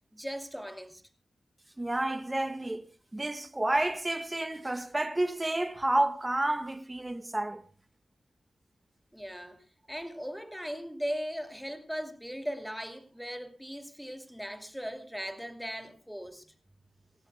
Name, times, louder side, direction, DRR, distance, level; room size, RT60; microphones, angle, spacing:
voice 1, 0.1-1.0 9.1-16.5, equal, ahead, 2.5 m, -38 dB
voice 2, 1.8-2.9 3.1-7.6, right 1 dB, 20° right, 1.6 m, -30 dB
26.5 x 15.0 x 2.2 m
cardioid pair, 75°, 0 cm